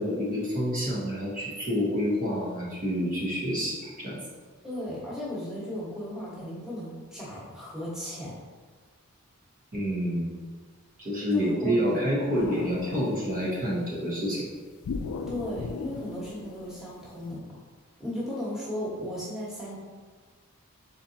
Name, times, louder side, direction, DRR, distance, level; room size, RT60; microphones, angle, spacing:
voice 1, 0.0-4.2 9.7-10.3 11.0-14.5, equal, 40° right, -7 dB, 1.0 m, -28 dB
voice 2, 4.6-8.4 11.3-12.0 15.3-17.5 18.0-19.8, equal, 5° right, -9 dB, 1.3 m, -35 dB
sound 1, 12.3-13.8 14.8-17.3, left 4 dB, 80° left, 0.4 m, -37 dB
4.2 x 3.9 x 2.8 m, 1.5 s
head